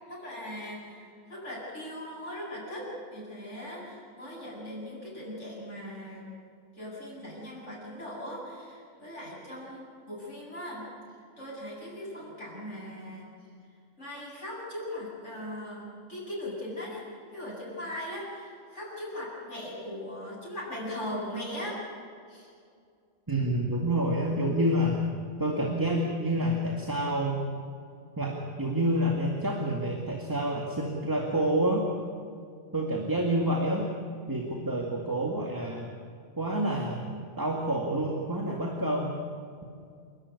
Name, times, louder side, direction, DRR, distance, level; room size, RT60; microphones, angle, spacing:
voice 1, 0.1-6.2 6.7-10.9 11.4-13.3 14.0-17.1 17.3-21.8 22.3-22.5, left 1 dB, 85° left, -6 dB, 7.9 m, -39 dB
voice 2, 23.3-25.0 25.4-27.4 28.2-31.9 32.7-33.9 34.3-35.9 36.4-37.1 37.4-39.1, right 1 dB, 15° right, 0 dB, 2.1 m, -28 dB
29.0 x 12.0 x 9.8 m, 2.3 s
omnidirectional pair, 1.2 m